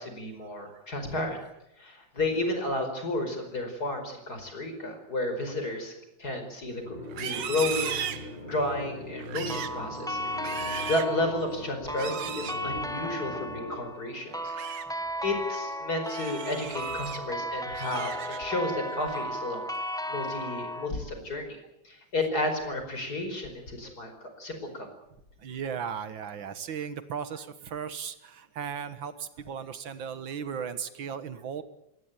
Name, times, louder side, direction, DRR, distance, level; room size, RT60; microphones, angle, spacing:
voice 1, 0.0-1.4 1.8-5.9 6.2-10.2 10.9-14.5 15.2-19.7 20.1-21.6 21.8-24.9, left 2 dB, 55° left, 6 dB, 5.5 m, -32 dB
sound 1, 6.8-13.8, left 1 dB, 85° left, 6.4 m, -40 dB
Livestock farm animals working animals, 7.0-8.7 9.2-9.8 10.3-11.2 11.9-12.6 14.3-14.9 15.3-15.6 16.0-17.2 17.6-18.6 19.0-19.4 19.8-20.2, right 9 dB, 70° right, 1.8 m, -37 dB
sound 2, 9.5-20.9, equal, 5° left, 0.6 m, -35 dB
voice 2, 25.4-31.6, right 7 dB, 85° right, 12 dB, 2.2 m, -37 dB
21.0 x 18.5 x 9.2 m, 0.83 s
omnidirectional pair, 2.0 m